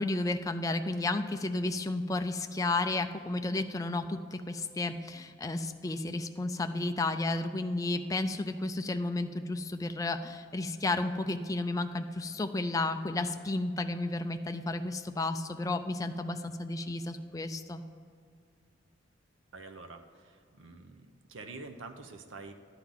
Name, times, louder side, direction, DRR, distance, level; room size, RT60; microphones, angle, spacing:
voice 1, 0.0-17.8, left 2 dB, 15° left, 7 dB, 0.3 m, -32 dB
voice 2, 19.5-22.5, right 3 dB, 80° right, 6 dB, 0.7 m, -47 dB
11.0 x 3.9 x 7.2 m, 2.3 s
head